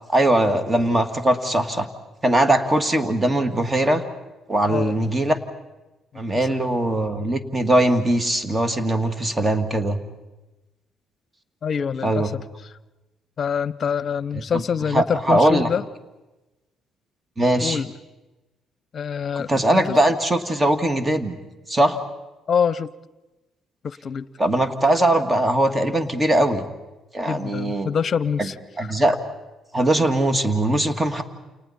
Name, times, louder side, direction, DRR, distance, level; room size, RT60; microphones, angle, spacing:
voice 1, 0.1-1.9 2.2-4.0 4.5-5.4 6.2-10.0 12.0-12.3 14.5-14.6 14.9-15.7 17.4-17.8 19.3-21.4 21.7-22.0 24.4-26.6 27.1-27.9 28.4-28.5 28.8-29.2 29.7-31.2, right 1 dB, 25° right, 9 dB, 2.2 m, -20 dB
voice 2, 11.6-12.4 13.4-15.8 17.6-17.9 18.9-19.8 22.5-22.9 23.8-24.3 27.2-28.9, left 7 dB, 50° left, 18 dB, 0.8 m, -25 dB
29.0 x 28.5 x 4.4 m, 1.1 s
hypercardioid pair, 50°, 0 cm